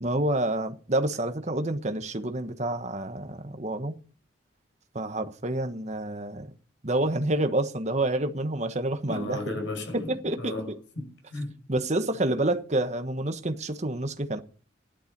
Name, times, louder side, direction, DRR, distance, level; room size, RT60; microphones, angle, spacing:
voice 1, 0.0-3.9 4.9-6.5 6.8-9.6 9.9-10.8 11.7-14.4, right 1 dB, 35° right, 1.2 m, -28 dB
voice 2, 9.1-11.5, left 1 dB, 70° left, 5.9 m, -35 dB
15.0 x 11.5 x 5.3 m
head